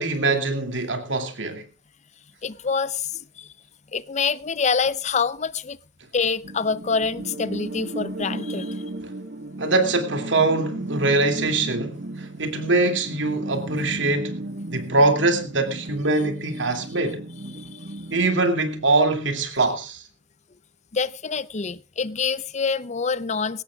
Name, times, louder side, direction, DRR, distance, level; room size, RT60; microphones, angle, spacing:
voice 1, 0.0-1.6 9.0-9.1 9.6-14.4 14.7-17.2 18.1-20.0, right 2 dB, 80° right, 2.6 m, -23 dB
voice 2, 2.4-3.1 3.4-3.5 3.9-5.8 6.1-8.8 17.5-17.9 20.9-23.6, left 5 dB, 40° left, 0.6 m, -26 dB
sound 1, 6.4-18.4, right 2 dB, 65° right, 1.3 m, -35 dB
20.5 x 17.0 x 2.4 m
head